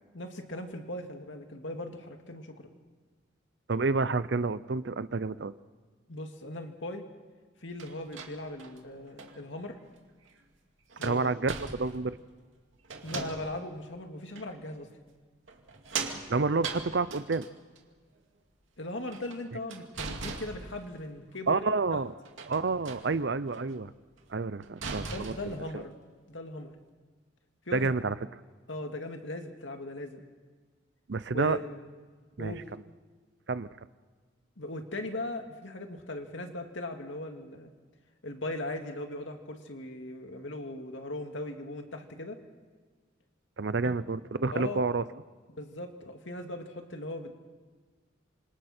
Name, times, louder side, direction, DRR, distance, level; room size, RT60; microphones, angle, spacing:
voice 1, 0.1-2.8 6.1-7.0 7.6-9.8 11.0-11.3 13.0-14.9 18.8-22.0 25.0-26.0 26.3-26.7 27.7-27.9 28.7-30.2 31.3-31.9 32.4-32.6 34.6-37.7 38.2-42.4 43.8-44.0 44.5-44.8 45.5-47.3, left 1 dB, 75° left, 4 dB, 2.3 m, -39 dB
voice 2, 3.7-5.5 11.0-12.2 16.0-17.5 21.5-22.1 22.5-23.9 24.3-25.8 27.7-28.1 31.1-31.6 32.4-32.5 33.5-33.7 43.6-45.0, right 3 dB, 60° right, 16 dB, 0.6 m, -29 dB
sound 1, 7.8-9.4 10.3-10.4 10.9-12.2 12.8-13.7 14.4-14.5 15.5-17.8 19.0-21.1 22.3-23.1 23.5-23.8 24.2-24.3 24.6-25.7, right 4 dB, 85° right, 2.5 m, -40 dB
27.5 x 26.0 x 4.4 m, 1.5 s
head